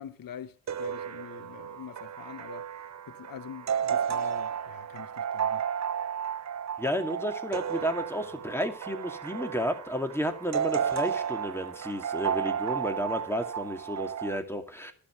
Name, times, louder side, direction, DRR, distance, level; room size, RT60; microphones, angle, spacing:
voice 1, 0.0-2.7 3.1-5.6, left 9 dB, 75° left, 1.1 m, -44 dB
sound 1, 0.7-14.4, right 8 dB, 55° right, 0.7 m, -33 dB
voice 2, 6.8-14.9, equal, 5° left, 2.3 m, -32 dB
11.5 x 7.3 x 6.9 m
cardioid pair, 55°, 34 cm